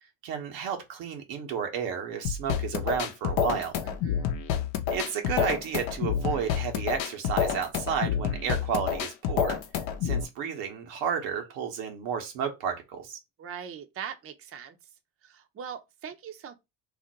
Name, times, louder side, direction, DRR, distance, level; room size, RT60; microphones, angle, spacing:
voice 1, 0.2-3.7 4.9-9.6 10.0-13.2, right 7 dB, 80° right, 0.9 m, -32 dB
sound 1, 2.2-10.2, left 8 dB, 70° left, 0.7 m, -28 dB
voice 2, 3.8-4.3 13.4-14.8 15.2-16.5, right 8 dB, 30° right, 0.5 m, -41 dB
2.5 x 2.1 x 3.9 m
supercardioid pair, 70°, 48 cm